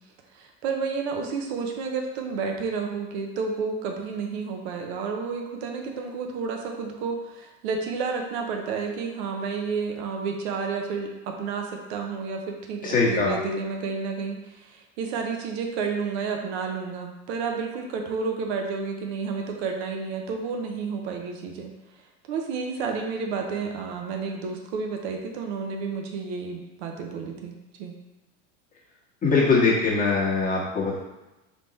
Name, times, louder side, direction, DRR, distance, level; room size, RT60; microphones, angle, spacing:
voice 1, 0.3-21.7 22.3-27.5 27.8-27.9, right 5 dB, 70° right, 2 dB, 0.8 m, -31 dB
voice 2, 12.8-13.4 29.2-31.0, left 4 dB, 25° left, -5 dB, 1.4 m, -22 dB
3.5 x 3.1 x 4.0 m, 1.0 s
supercardioid pair, 110°, 34 cm